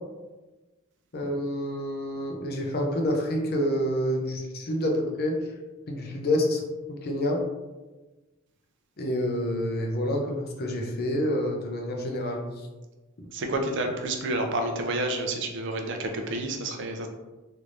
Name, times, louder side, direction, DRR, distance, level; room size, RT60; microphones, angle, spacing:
voice 1, 1.1-5.4 5.9-6.6 6.9-7.4 9.0-12.4, left 1 dB, 50° left, 1 dB, 0.6 m, -28 dB
voice 2, 13.3-17.1, right 2 dB, 60° right, 4 dB, 0.5 m, -29 dB
3.3 x 2.6 x 3.1 m, 1.2 s
head